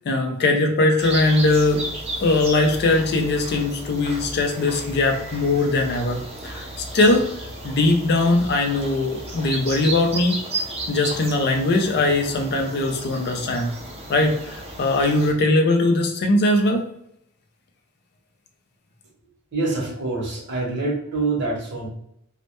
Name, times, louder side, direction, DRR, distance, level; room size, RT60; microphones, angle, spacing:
voice 1, 0.0-1.8 2.2-7.3 7.6-10.4 10.9-13.7 14.1-16.8, left 2 dB, 45° left, 3 dB, 0.4 m, -20 dB
sound 1, 1.0-15.3, right 1 dB, 25° right, 0.4 m, -34 dB
voice 2, 19.5-21.9, right 3 dB, 50° right, -2 dB, 0.7 m, -25 dB
2.1 x 2.0 x 2.8 m, 0.75 s
head